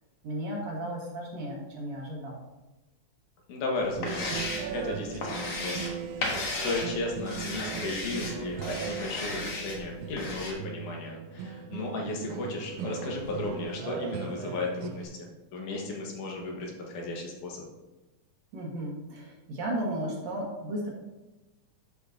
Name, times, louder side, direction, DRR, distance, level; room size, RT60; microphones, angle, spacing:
voice 1, 0.2-2.4 18.5-20.9, right 1 dB, 60° right, -2 dB, 2.6 m, -34 dB
voice 2, 3.5-4.5 4.7-17.6, left 3 dB, 80° left, 0 dB, 2.8 m, -35 dB
sound 1, 3.8-10.5, left 2 dB, 60° left, 1.0 m, -35 dB
sound 2, 3.9-15.1, right 7 dB, 80° right, 1.8 m, -38 dB
11.0 x 5.9 x 2.6 m, 1.0 s
omnidirectional pair, 3.6 m